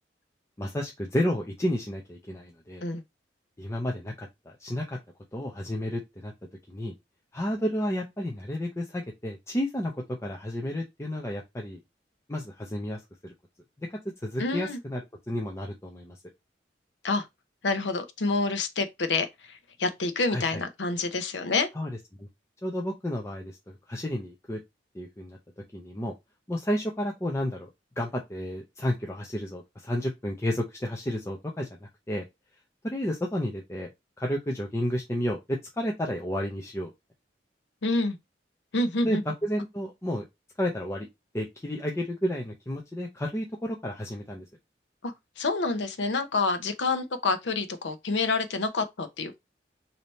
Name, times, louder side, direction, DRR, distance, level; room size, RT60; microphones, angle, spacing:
voice 1, 0.6-2.8 3.6-4.3 4.6-5.0 5.3-6.3 6.7-6.9 7.3-9.9 10.2-11.8 12.3-13.3 13.8-13.9 14.2-15.0 15.3-16.2 20.3-20.6 21.7-21.9 22.2-22.3 22.6-23.5 23.9-24.6 24.9-25.4 25.7-26.1 26.5-27.7 28.0-31.7 32.1-32.2 32.8-33.9 34.2-36.9 39.0-40.2 40.6-41.1 41.3-44.4, equal, 15° left, 0.6 m, -31 dB
voice 2, 14.4-14.8 17.0-17.2 17.6-19.3 19.8-21.7 37.8-38.2 38.7-39.2 45.0-49.4, left 3 dB, 80° left, 0.7 m, -27 dB
3.3 x 2.8 x 4.1 m
head